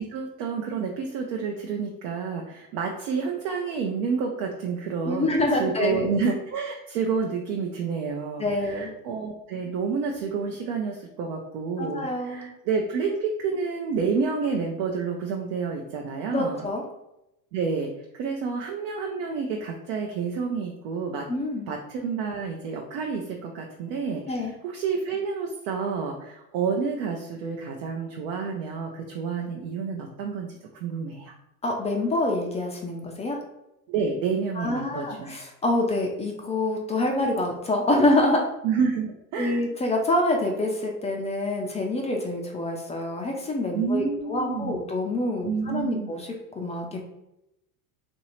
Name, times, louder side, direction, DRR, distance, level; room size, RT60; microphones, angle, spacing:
voice 1, 0.0-16.6 17.5-21.3 21.7-30.5 30.7-31.3 33.9-35.3 38.6-39.6 43.7-44.8 45.4-46.1, right 5 dB, 60° right, 1 dB, 0.6 m, -29 dB
voice 2, 5.1-6.1 8.4-8.9 11.8-12.5 16.3-16.8 21.3-21.7 24.3-24.5 31.6-33.4 34.6-38.4 39.4-47.0, left 2 dB, 15° left, 1 dB, 0.4 m, -26 dB
3.0 x 2.6 x 2.9 m, 0.87 s
hypercardioid pair, 95°, 44 cm